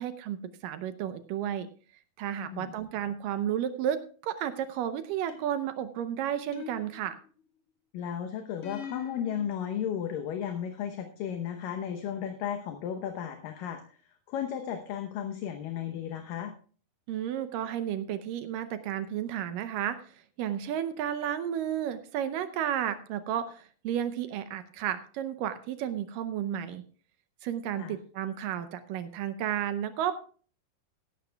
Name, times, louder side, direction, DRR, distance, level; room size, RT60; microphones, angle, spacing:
voice 1, 0.0-1.7 2.2-7.2 17.1-26.8 27.4-30.2, right 10 dB, 75° right, 11 dB, 2.2 m, -32 dB
voice 2, 2.4-2.7 7.9-14.0 14.3-16.5 27.8-28.0, left 9 dB, 70° left, 5 dB, 2.5 m, -34 dB
sound 1, 5.3-5.8 6.5-7.4 8.6-9.4, left 6 dB, 50° left, 1.9 m, -42 dB
16.0 x 12.0 x 2.2 m, 0.40 s
omnidirectional pair, 4.4 m